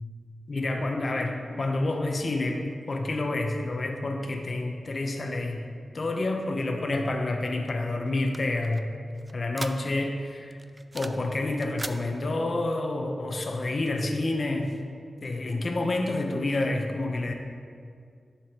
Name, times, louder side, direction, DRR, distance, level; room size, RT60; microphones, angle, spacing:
voice 1, 0.5-5.6 5.9-8.9 9.3-10.6 10.9-14.7 15.2-17.3, left 2 dB, 50° left, 3 dB, 0.7 m, -28 dB
sound 1, 7.7-10.2 10.5-11.3 11.5-12.0, right 2 dB, 25° right, 0.3 m, -40 dB
11.0 x 6.8 x 2.9 m, 2.2 s
wide cardioid pair, 115°, 0 cm